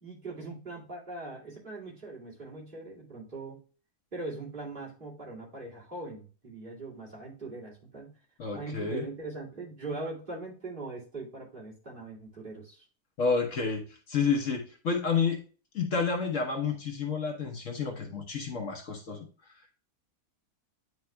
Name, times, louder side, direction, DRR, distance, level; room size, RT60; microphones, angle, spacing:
voice 1, 0.0-3.6 4.1-8.2 8.5-12.9, right 3 dB, 35° right, -5 dB, 2.5 m, -41 dB
voice 2, 8.4-9.0 13.2-15.4 15.7-19.3, left 5 dB, 55° left, 3 dB, 1.3 m, -30 dB
9.4 x 4.7 x 2.2 m, 0.38 s
omnidirectional pair, 1.6 m